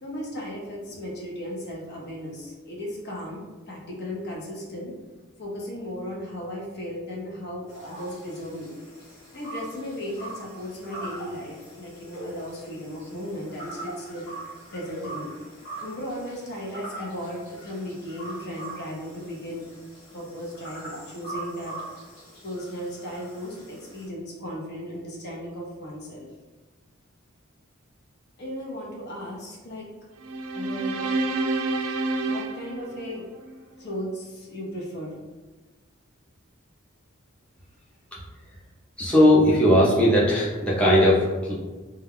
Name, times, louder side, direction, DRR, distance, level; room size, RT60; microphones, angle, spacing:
voice 1, 0.0-4.9 5.4-8.7 9.3-15.3 15.8-19.6 20.1-21.8 22.4-26.3 28.4-29.9 30.5-31.0 32.3-33.3 33.8-35.1, equal, 55° left, -3 dB, 0.7 m, -36 dB
sound 1, 7.7-24.1, right 1 dB, 80° left, 1.1 m, -42 dB
sound 2, 30.2-33.6, right 2 dB, 80° right, 0.3 m, -28 dB
voice 2, 39.0-41.5, left 1 dB, 5° left, -7 dB, 0.5 m, -18 dB
2.2 x 2.2 x 3.4 m, 1.3 s
head